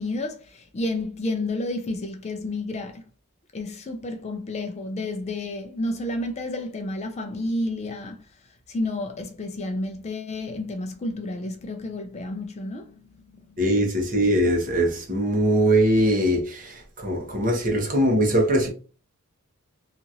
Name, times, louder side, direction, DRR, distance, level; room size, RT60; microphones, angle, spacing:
voice 1, 0.0-3.0 3.5-8.2 8.7-13.6, left 2 dB, 30° left, 0.4 m, -31 dB
voice 2, 13.6-18.7, right 1 dB, 40° right, 1.0 m, -21 dB
2.9 x 2.4 x 2.8 m
head